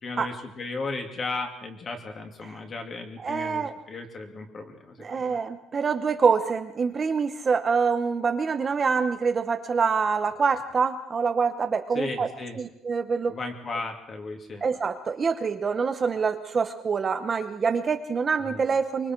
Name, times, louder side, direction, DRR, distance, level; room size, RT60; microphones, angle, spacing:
voice 1, 0.0-5.4 11.9-12.6 13.3-14.7 18.4-18.6, left 3 dB, 30° left, 3 dB, 2.6 m, -35 dB
voice 2, 3.2-3.7 5.0-12.3 12.6-13.4 14.6-19.1, right 5 dB, 25° right, 7 dB, 0.9 m, -25 dB
24.5 x 23.5 x 4.6 m, 0.78 s
cardioid pair, 170°, 0 cm